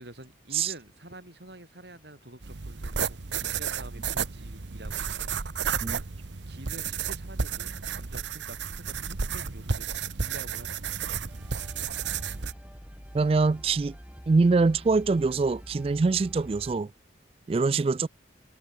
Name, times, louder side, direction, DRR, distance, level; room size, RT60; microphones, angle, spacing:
voice 1, 0.0-5.3 6.5-9.9 10.1-11.0, right 1 dB, 75° right, 7.5 m, -47 dB
sound 1, 2.4-12.5, right 6 dB, 90° right, 1.0 m, -32 dB
sound 2, 11.3-16.8, equal, 5° right, 3.9 m, -46 dB
voice 2, 13.1-14.0 14.3-16.9 17.5-18.1, right 4 dB, 30° right, 0.3 m, -24 dB
head